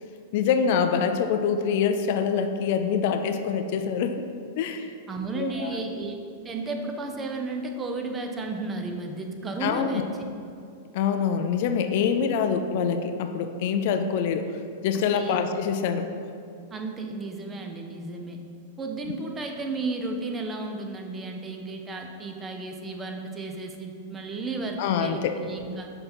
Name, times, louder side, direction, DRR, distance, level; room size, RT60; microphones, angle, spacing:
voice 1, 0.3-4.2 4.6-4.9 5.4-5.8 9.6-10.1 10.9-14.5 14.8-16.1 24.8-25.4, left 7 dB, 60° left, 7 dB, 0.4 m, -25 dB
voice 2, 5.1-6.2 6.4-10.3 12.1-12.4 14.9-15.4 16.7-18.4 18.8-25.9, right 3 dB, 20° right, 3 dB, 0.7 m, -33 dB
6.4 x 3.8 x 4.4 m, 2.5 s
hypercardioid pair, 115°, 0 cm